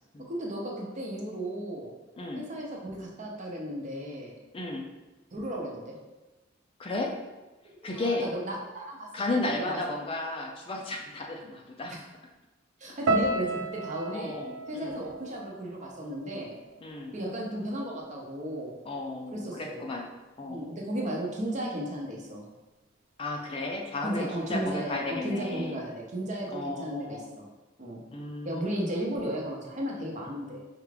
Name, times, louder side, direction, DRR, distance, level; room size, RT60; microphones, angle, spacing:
voice 1, 0.3-1.9 2.3-4.3 5.3-6.0 7.6-9.8 11.9-12.0 12.8-14.4 14.7-16.5 17.1-18.8 19.3-19.9 20.5-22.4 24.0-27.4 27.8-28.0 28.4-30.6, right 1 dB, 40° right, -2 dB, 0.7 m, -34 dB
voice 2, 4.5-4.8 6.8-7.1 7.8-8.3 9.1-11.9 14.1-15.0 16.8-17.2 18.9-20.1 20.4-20.7 23.2-25.8 26.5-27.3 28.1-28.7, left 2 dB, 30° left, 0 dB, 0.4 m, -34 dB
sound 1, 13.1-17.3 17.5-18.3 18.9-19.1, right 2 dB, 85° right, 0.4 m, -34 dB
4.6 x 2.4 x 3.2 m, 1.1 s
head